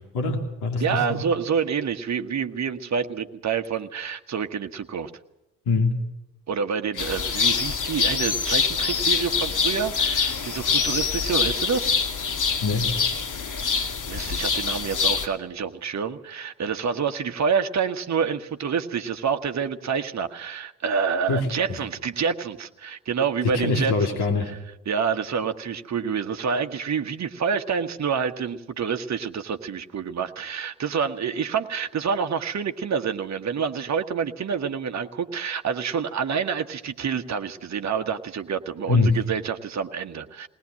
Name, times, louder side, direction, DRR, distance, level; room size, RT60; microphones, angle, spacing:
voice 1, 0.1-1.2 5.7-6.0 6.9-7.1 12.6-13.0 21.3-21.8 23.4-24.5 38.9-39.2, left 3 dB, 60° left, 4 dB, 3.1 m, -24 dB
voice 2, 0.8-5.1 6.5-11.9 13.7-24.2 24.9-40.5, right 6 dB, 40° right, 7 dB, 1.4 m, -27 dB
sound 1, 7.0-15.3, left 5 dB, 45° left, 2.3 m, -25 dB
20.0 x 19.5 x 7.7 m, 0.92 s
hypercardioid pair, 45°, 43 cm